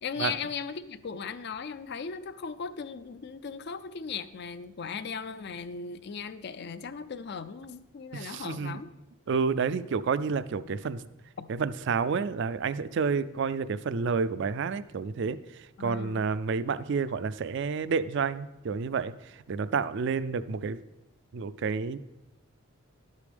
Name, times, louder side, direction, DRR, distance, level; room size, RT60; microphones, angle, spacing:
voice 1, 0.0-8.9 11.4-11.5 15.8-16.2, left 6 dB, 50° left, 13 dB, 0.4 m, -37 dB
voice 2, 8.1-8.8 9.3-11.0 11.5-20.8 21.3-22.0, right 5 dB, 55° right, 15 dB, 0.4 m, -30 dB
10.5 x 8.3 x 3.4 m, 0.96 s
head